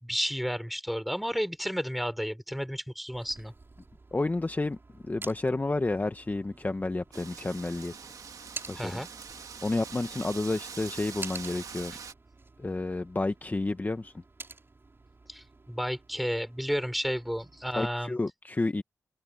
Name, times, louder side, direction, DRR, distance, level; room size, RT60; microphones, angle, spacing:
voice 1, 0.0-3.5 8.7-9.1 15.3-18.2, equal, ahead, 4.8 m, -32 dB
sound 1, 3.1-17.9, right 3 dB, 40° right, 6.2 m, -49 dB
voice 2, 4.1-4.8 5.0-7.9 8.7-8.9 9.6-11.9 12.6-14.1 17.8-18.8, left 2 dB, 30° left, 1.2 m, -30 dB
Wind, 7.1-12.1, right 6 dB, 80° right, 2.1 m, -43 dB
open air
cardioid pair, 55°, 6 cm